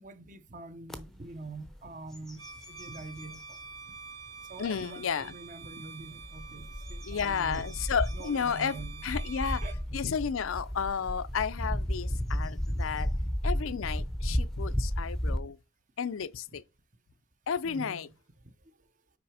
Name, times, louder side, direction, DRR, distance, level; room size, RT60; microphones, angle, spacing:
voice 1, 0.0-3.6 4.5-7.7 8.1-9.1 9.6-9.8 13.8-13.9 17.6-18.1, right 3 dB, 40° right, 0.7 m, -45 dB
sound 1, 0.9-1.0 1.5-1.8 2.1-3.6 4.2-4.3 6.0-15.4, equal, ahead, 0.6 m, -33 dB
Bowed string instrument, 2.3-9.8, right 5 dB, 60° right, 1.5 m, -48 dB
voice 2, 4.6-5.3 7.0-8.7 9.0-9.6 9.9-13.1 13.4-15.6 16.0-16.6 17.5-18.1, left 6 dB, 80° left, 0.5 m, -32 dB
6.0 x 4.8 x 4.9 m
head